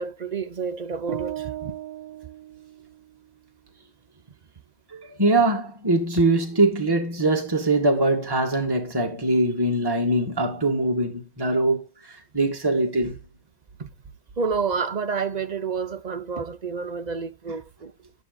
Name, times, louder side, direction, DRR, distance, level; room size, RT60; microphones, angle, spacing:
voice 1, 0.0-1.7 13.8-13.9 14.4-17.9, right 5 dB, 45° right, 0.6 m, -29 dB
sound 1, 1.1-3.3, right 13 dB, 85° right, 1.2 m, -36 dB
voice 2, 4.9-11.8 12.1-13.2, right 2 dB, 15° right, 2.1 m, -22 dB
11.0 x 10.0 x 2.5 m
omnidirectional pair, 1.5 m